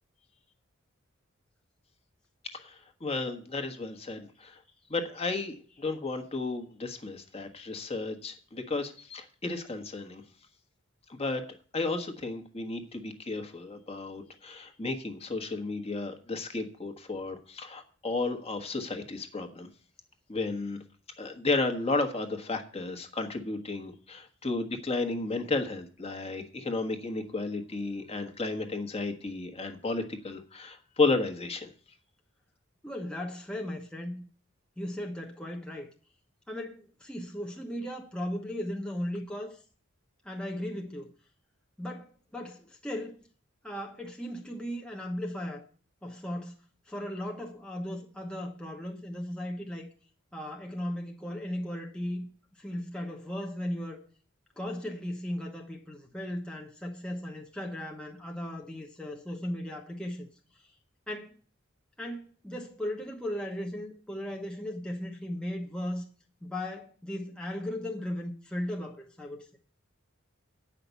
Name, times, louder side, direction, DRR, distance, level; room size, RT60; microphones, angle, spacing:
voice 1, 2.5-4.6 4.9-10.2 11.1-11.4 11.7-19.7 20.3-20.8 21.2-31.7, left 3 dB, 30° left, 1.3 m, -33 dB
voice 2, 32.8-34.2 34.8-35.9 36.5-39.6 40.2-41.1 41.8-43.2 43.6-45.6 46.0-46.6 46.9-49.9 50.3-54.0 54.6-60.3 60.5-60.7 61.1-61.3 62.0-66.0 66.4-69.5, left 1 dB, 5° left, 1.0 m, -37 dB
9.3 x 5.9 x 8.1 m
head